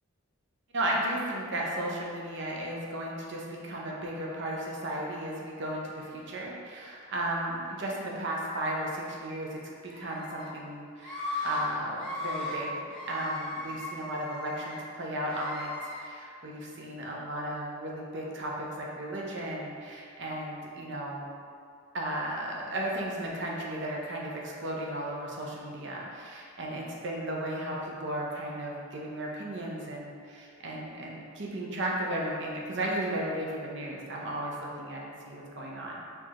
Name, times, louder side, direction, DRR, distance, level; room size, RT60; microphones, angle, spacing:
voice 1, 0.7-12.7 13.1-21.3 21.9-36.1, right 1 dB, 55° right, -3 dB, 0.6 m, -35 dB
Screaming, 9.9-10.5 11.0-11.6 11.9-12.6 12.9-14.8 15.3-16.0, left 2 dB, 5° left, 0.9 m, -37 dB
4.5 x 2.4 x 2.9 m, 2.3 s
head